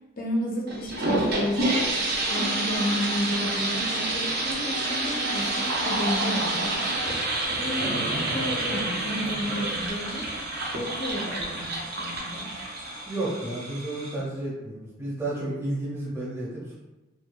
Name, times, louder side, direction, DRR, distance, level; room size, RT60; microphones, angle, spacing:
voice 1, 0.2-1.8 2.3-6.8 7.6-10.3 10.7-12.5, equal, 45° left, -1 dB, 0.5 m, -32 dB
sound 1, 0.7-13.2, right 2 dB, 50° right, 0.5 m, -28 dB
sound 2, 5.1-14.2, right 1 dB, 85° right, 0.7 m, -37 dB
voice 2, 13.0-16.7, right 2 dB, 15° right, -7 dB, 0.8 m, -32 dB
2.7 x 2.3 x 2.2 m, 1.0 s
head